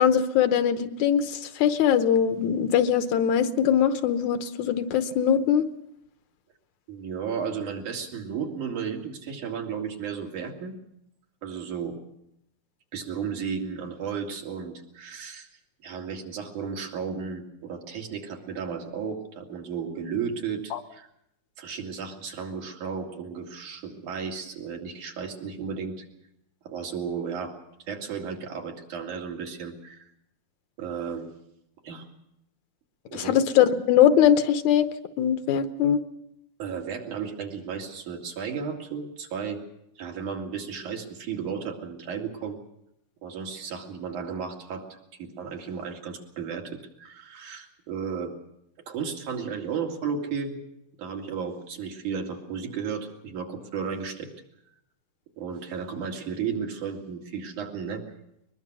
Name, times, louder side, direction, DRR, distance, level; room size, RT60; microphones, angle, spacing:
voice 1, 0.0-5.6 20.7-20.8 33.1-34.9 35.2-36.0, left 9 dB, 75° left, 10 dB, 2.3 m, -21 dB
voice 2, 6.9-10.7 11.4-12.0 12.9-15.5 15.8-21.1 21.6-26.1 26.7-27.5 27.9-30.1 30.8-31.3 31.8-32.1 33.1-33.4 36.6-39.6 40.0-42.6 43.2-44.9 45.1-48.3 48.9-50.5 51.0-54.3 55.4-58.0, right 6 dB, 80° right, 1 dB, 3.9 m, -34 dB
22.0 x 22.0 x 6.1 m, 0.79 s
omnidirectional pair, 3.5 m